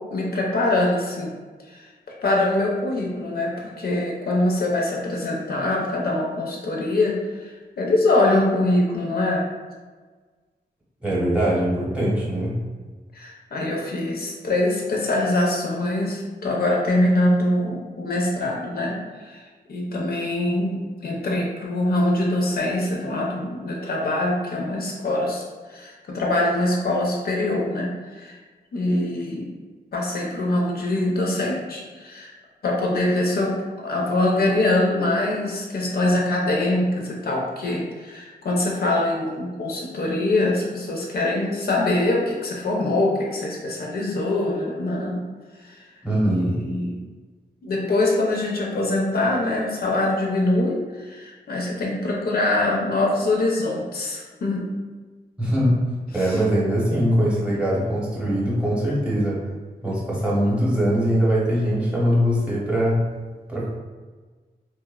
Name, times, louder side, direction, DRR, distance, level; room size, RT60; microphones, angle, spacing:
voice 1, 0.1-1.3 1.7-1.9 2.2-9.5 13.1-19.4 19.7-25.4 25.7-28.4 28.7-29.5 29.9-32.3 32.6-45.2 45.6-45.8 46.2-47.0 47.6-54.7, left 2 dB, 70° left, -2 dB, 0.5 m, -23 dB
voice 2, 11.0-12.6 46.0-46.6 55.4-55.8 56.1-59.4 59.8-63.1 63.5-63.7, equal, 5° right, -7 dB, 0.7 m, -22 dB
2.9 x 2.0 x 2.2 m, 1.4 s
wide cardioid pair, 150°, 17 cm